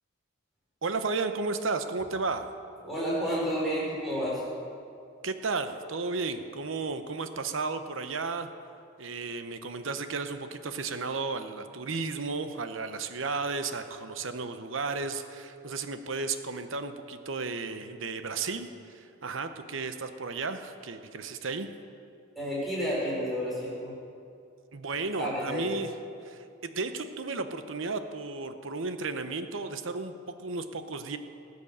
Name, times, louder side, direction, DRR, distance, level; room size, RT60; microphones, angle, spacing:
voice 1, 0.8-2.5 5.2-8.5 9.0-21.7 24.7-25.9 26.2-31.2, right 4 dB, 70° right, 9 dB, 0.9 m, -33 dB
voice 2, 2.8-4.4 22.3-24.0 25.2-25.7, equal, ahead, -8 dB, 4.6 m, -30 dB
19.0 x 8.2 x 6.7 m, 2.5 s
head